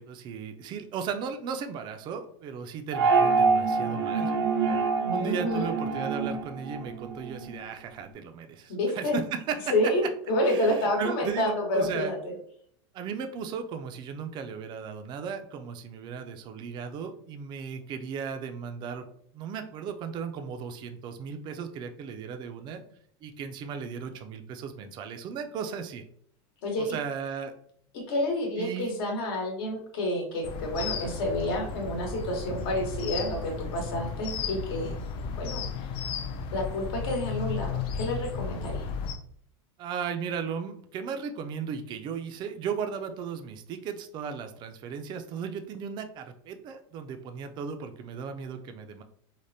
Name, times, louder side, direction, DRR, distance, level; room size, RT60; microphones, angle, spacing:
voice 1, 0.0-4.3 5.1-9.2 9.5-9.7 10.4-12.1 12.9-19.0 19.3-22.8 23.2-26.0 26.8-27.5 28.6-28.9 30.8-31.1 39.8-49.0, right 6 dB, 35° right, 7 dB, 0.4 m, -36 dB
sound 1, 2.9-7.5, right 4 dB, 90° right, 0.5 m, -26 dB
voice 2, 5.0-5.7 8.7-9.2 9.7-12.2 26.6-27.0 27.9-35.0 35.2-35.9 36.5-38.9, left 1 dB, 65° left, 1 dB, 1.1 m, -29 dB
sound 2, 30.4-39.2, left 6 dB, 40° left, 0.4 m, -34 dB
3.4 x 2.1 x 2.6 m, 0.64 s
supercardioid pair, 125°, 14 cm